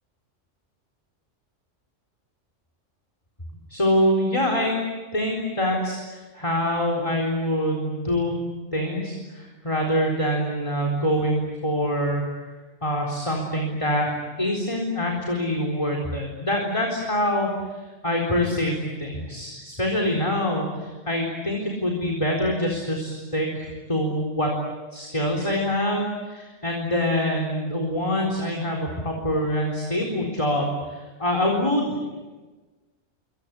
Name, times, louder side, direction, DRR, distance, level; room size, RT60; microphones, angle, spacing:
voice 1, 3.7-4.8 5.1-8.4 8.7-12.2 12.8-14.1 14.4-17.5 18.0-24.6 24.9-32.2, left 1 dB, 25° left, 1 dB, 4.2 m, -25 dB
27.5 x 25.5 x 8.5 m, 1.3 s
omnidirectional pair, 1.3 m